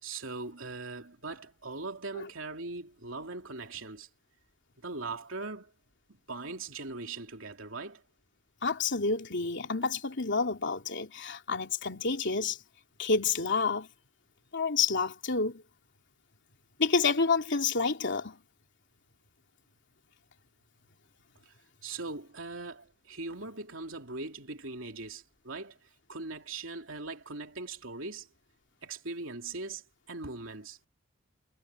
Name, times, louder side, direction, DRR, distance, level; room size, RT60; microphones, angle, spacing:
voice 1, 0.0-4.1 4.8-5.7 6.3-8.0 21.4-21.5 21.8-28.3 28.8-30.8, right 3 dB, 75° right, 3.1 m, -40 dB
voice 2, 8.6-12.6 13.0-13.9 14.5-15.6 16.8-18.4, left 4 dB, 60° left, 2.9 m, -29 dB
head